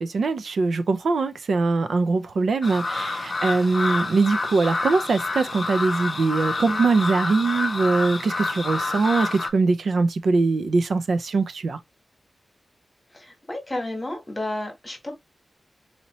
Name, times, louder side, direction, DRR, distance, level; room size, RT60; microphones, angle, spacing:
voice 1, 0.0-11.8, right 3 dB, 65° right, 0.5 m, -22 dB
sound 1, 2.6-9.5, left 3 dB, 35° left, 0.7 m, -28 dB
voice 2, 13.1-15.1, left 1 dB, 15° left, 1.5 m, -31 dB
4.2 x 2.8 x 2.9 m
wide cardioid pair, 155°, 0 cm